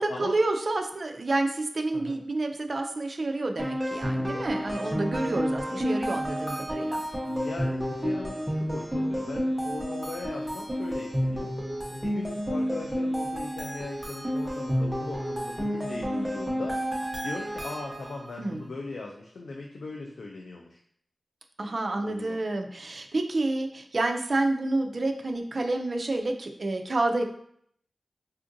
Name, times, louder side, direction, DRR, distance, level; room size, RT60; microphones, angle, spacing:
voice 1, 0.0-7.0 18.4-18.7 21.6-27.2, right 2 dB, 55° right, 4 dB, 0.3 m, -29 dB
sound 1, 3.6-18.3, equal, 5° right, 0.7 m, -30 dB
voice 2, 7.2-11.5 11.9-20.8 22.0-22.4, left 3 dB, 85° left, 0 dB, 0.3 m, -39 dB
3.5 x 2.5 x 2.6 m, 0.66 s
wide cardioid pair, 60°, 0 cm